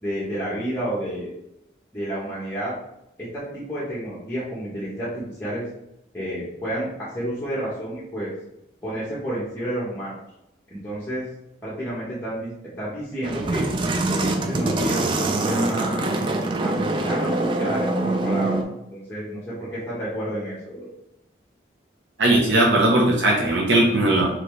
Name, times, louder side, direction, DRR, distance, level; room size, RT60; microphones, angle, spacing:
voice 1, 0.0-1.3 1.9-2.7 3.2-5.6 6.1-8.3 8.8-10.1 10.7-11.3 11.6-12.5 12.8-13.7 14.1-15.0 15.4-16.1 16.6-17.9 18.2-18.6 18.9-20.9, right 1 dB, 10° left, -9 dB, 1.0 m, -30 dB
sound 1, 13.2-18.6, right 2 dB, 30° right, 0.4 m, -24 dB
voice 2, 22.2-24.3, right 1 dB, 85° right, -2 dB, 0.9 m, -18 dB
4.1 x 3.1 x 3.2 m, 0.82 s
head